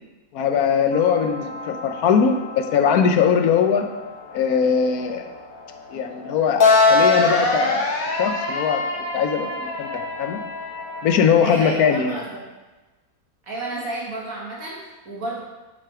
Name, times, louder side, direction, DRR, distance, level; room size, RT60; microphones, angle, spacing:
voice 1, 0.3-2.4 2.7-3.9 4.3-5.3 5.9-7.9 8.2-8.8 9.1-10.4 11.0-12.2, left 7 dB, 90° left, 6 dB, 1.3 m, -20 dB
sound 1, 0.9-11.3, left 3 dB, 70° left, 1.5 m, -24 dB
voice 2, 11.4-12.4 13.4-15.4, right 2 dB, 70° right, -4 dB, 2.3 m, -31 dB
6.5 x 6.4 x 4.8 m, 1.2 s
omnidirectional pair, 1.5 m